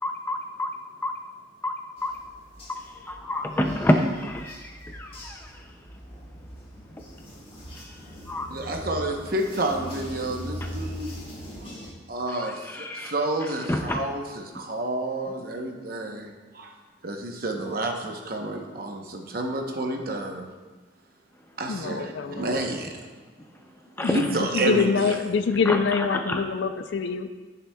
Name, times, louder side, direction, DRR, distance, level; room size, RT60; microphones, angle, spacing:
voice 1, 0.0-0.7 1.0-1.2 1.6-2.2 2.7-5.8 7.0-7.1 7.8-8.5 10.6-10.7 12.3-13.1 13.4-14.0 24.0-24.4 25.7-26.4, left 1 dB, 10° left, 4 dB, 0.4 m, -29 dB
sound 1, 2.0-11.9, equal, 30° left, 1.4 m, -41 dB
voice 2, 8.5-11.1 11.6-11.7 12.1-16.7 17.0-20.5 21.6-23.0 24.1-25.2, right 1 dB, 50° right, 2 dB, 0.9 m, -30 dB
voice 3, 21.7-22.6 24.0-27.3, left 5 dB, 70° left, 9 dB, 0.4 m, -25 dB
11.0 x 6.8 x 2.3 m, 1.3 s
head